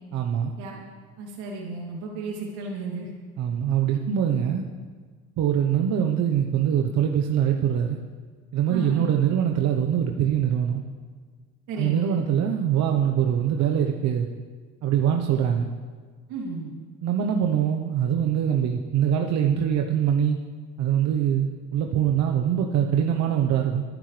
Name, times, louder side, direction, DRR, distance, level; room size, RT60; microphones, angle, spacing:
voice 1, 0.1-0.5 3.4-4.6 5.4-8.0 8.5-10.8 11.7-14.3 14.8-15.7 17.0-20.4 20.8-23.8, right 9 dB, 65° right, 3 dB, 1.1 m, -23 dB
voice 2, 1.2-3.1 8.7-9.1 11.7-12.2 16.3-16.7, right 4 dB, 80° right, -3 dB, 3.1 m, -33 dB
27.0 x 10.0 x 3.4 m, 1.5 s
cardioid pair, 110°, 30 cm